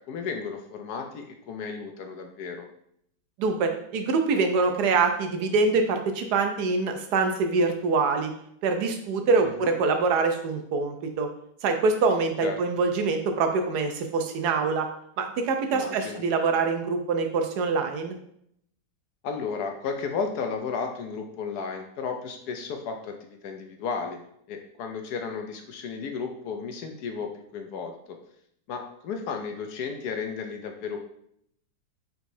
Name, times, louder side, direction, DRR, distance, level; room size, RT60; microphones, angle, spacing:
voice 1, 0.1-2.7 9.6-9.7 12.4-12.6 15.7-16.2 19.2-24.2 24.5-28.2 28.7-31.0, left 5 dB, 70° left, 4 dB, 1.1 m, -33 dB
voice 2, 3.4-8.3 8.6-11.3 11.6-14.9 15.2-18.1, right 4 dB, 75° right, 5 dB, 1.1 m, -24 dB
4.6 x 4.0 x 2.6 m, 0.70 s
omnidirectional pair, 1.8 m